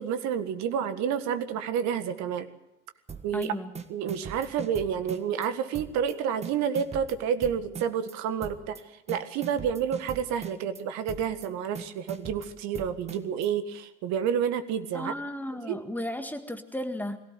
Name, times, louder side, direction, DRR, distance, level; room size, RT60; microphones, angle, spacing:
voice 1, 0.0-2.5 3.2-3.5 3.9-8.8 9.1-15.1 15.7-15.8, right 8 dB, 45° right, 10 dB, 1.8 m, -29 dB
sound 1, 3.1-3.5 3.7-5.5 5.7-6.1 6.4-8.1 8.4-8.8 9.1-10.8 11.1-11.5 11.7-13.5, right 6 dB, 15° right, 1.4 m, -40 dB
voice 2, 3.3-3.7 14.9-17.2, left 1 dB, 5° left, 7 dB, 1.8 m, -34 dB
22.5 x 17.0 x 8.0 m, 0.86 s
figure-of-eight pair, 80°, 37 cm